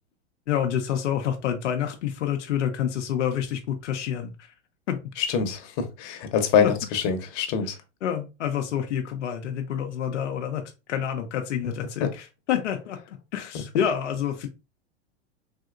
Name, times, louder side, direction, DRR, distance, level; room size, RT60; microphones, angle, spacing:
voice 1, 0.5-4.5 4.9-5.0 6.6-6.7 8.0-14.5, left 9 dB, 85° left, 3 dB, 0.7 m, -28 dB
voice 2, 5.2-7.8, left 7 dB, 50° left, 6 dB, 0.9 m, -24 dB
3.5 x 2.7 x 2.4 m, 0.28 s
hypercardioid pair, 110°, 35 cm